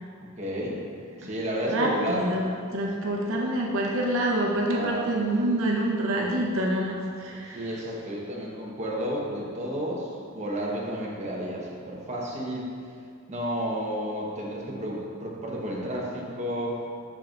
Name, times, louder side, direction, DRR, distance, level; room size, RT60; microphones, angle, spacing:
voice 1, 0.4-0.8 1.2-2.2 4.6-5.0 7.5-12.7 13.3-16.8, equal, 35° right, -4 dB, 1.2 m, -31 dB
voice 2, 1.7-7.7, right 1 dB, 75° right, -2 dB, 0.9 m, -27 dB
11.5 x 4.5 x 2.6 m, 2.3 s
head